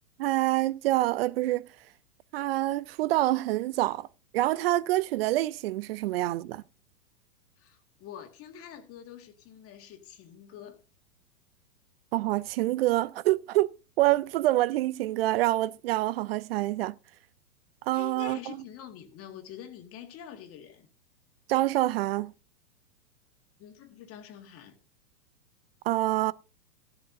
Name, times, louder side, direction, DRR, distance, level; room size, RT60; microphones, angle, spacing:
voice 1, 0.2-1.7 2.3-4.1 4.3-6.6 12.1-17.0 17.8-18.6 21.5-22.3 25.8-26.3, right 16 dB, 40° right, 0.5 m, -26 dB
voice 2, 7.6-10.8 17.9-20.9 23.6-24.8, left 9 dB, 30° left, 1.8 m, -46 dB
15.5 x 11.5 x 2.7 m
hypercardioid pair, 110°, 44 cm